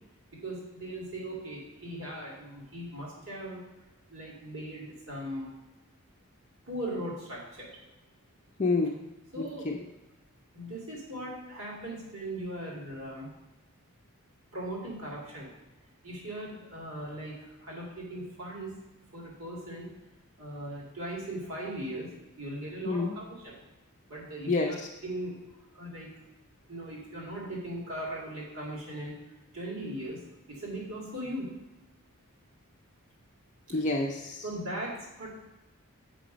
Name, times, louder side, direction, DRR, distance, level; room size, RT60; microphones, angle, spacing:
voice 1, 0.3-3.6 4.1-5.5 6.7-7.7 9.3-9.7 10.5-13.3 14.5-15.5 16.0-18.8 19.1-19.9 20.4-22.1 22.4-23.6 24.1-24.8 25.0-25.4 25.7-26.1 26.7-29.2 29.5-30.2 30.5-31.5 33.7-33.8 34.4-35.3, right 1 dB, 65° right, -3 dB, 2.3 m, -39 dB
voice 2, 8.6-8.9 9.4-9.8 22.8-23.1 24.5-24.7 33.7-34.4, left 3 dB, 30° left, 0 dB, 0.5 m, -28 dB
6.6 x 5.1 x 5.1 m, 1.0 s
head